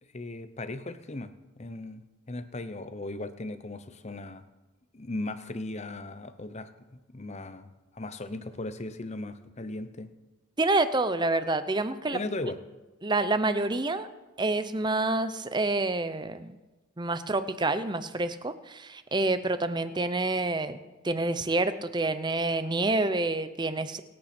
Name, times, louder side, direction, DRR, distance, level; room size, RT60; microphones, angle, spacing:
voice 1, 0.1-4.4 4.9-10.1 12.1-12.6, left 2 dB, 30° left, 11 dB, 0.7 m, -37 dB
voice 2, 10.6-12.2 13.0-14.1 14.4-16.5 17.0-20.8 21.0-24.0, right 2 dB, 20° right, 11 dB, 0.7 m, -28 dB
25.5 x 8.7 x 4.4 m, 1.2 s
head